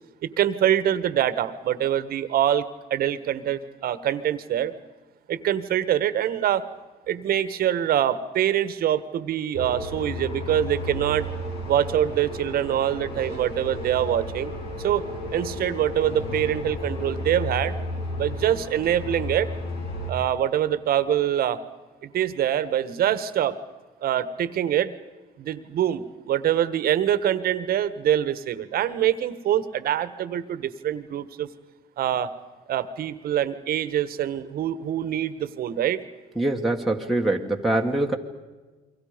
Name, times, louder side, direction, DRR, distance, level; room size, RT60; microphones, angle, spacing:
voice 1, 0.2-4.7 5.3-6.6 7.1-11.3 11.7-14.5 14.8-15.0 15.3-17.8 18.2-19.5 20.1-21.6 22.0-23.6 24.0-24.9 25.4-31.5 32.0-32.3 32.7-36.0, right 11 dB, 60° right, 13 dB, 1.5 m, -24 dB
sound 1, 9.5-20.1, left 1 dB, 80° left, 6.5 m, -33 dB
voice 2, 36.4-38.2, right 2 dB, ahead, -1 dB, 1.8 m, -24 dB
29.5 x 24.0 x 5.2 m, 1.3 s
cardioid pair, 110°, 17 cm